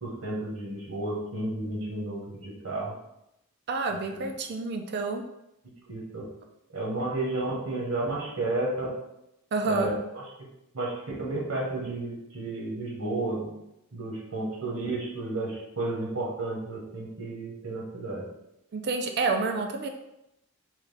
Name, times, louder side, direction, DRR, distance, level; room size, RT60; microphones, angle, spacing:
voice 1, 0.0-2.9 4.2-4.3 5.9-6.3 6.7-8.9 9.6-10.0 10.7-13.5 13.9-18.3, right 2 dB, 80° right, -4 dB, 1.3 m, -32 dB
voice 2, 3.7-5.2 9.5-9.9 18.7-19.9, right 3 dB, 50° right, 5 dB, 0.4 m, -28 dB
3.7 x 3.1 x 3.3 m, 0.86 s
head